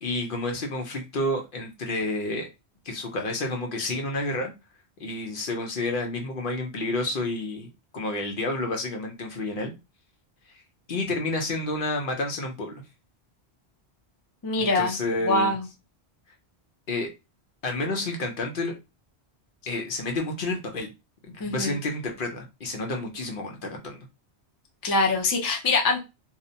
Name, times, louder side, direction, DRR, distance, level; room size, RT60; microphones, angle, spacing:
voice 1, 0.0-2.5 2.9-4.5 5.0-7.7 7.9-9.7 10.9-12.8 14.6-15.5 16.9-17.1 17.6-18.7 19.7-20.9 21.2-24.0, left 2 dB, 60° left, 2 dB, 0.7 m, -30 dB
voice 2, 14.4-14.9 15.2-15.6 21.4-21.8 24.8-26.0, left 3 dB, 35° left, 1 dB, 0.3 m, -23 dB
2.7 x 2.0 x 2.6 m, 0.26 s
omnidirectional pair, 1.1 m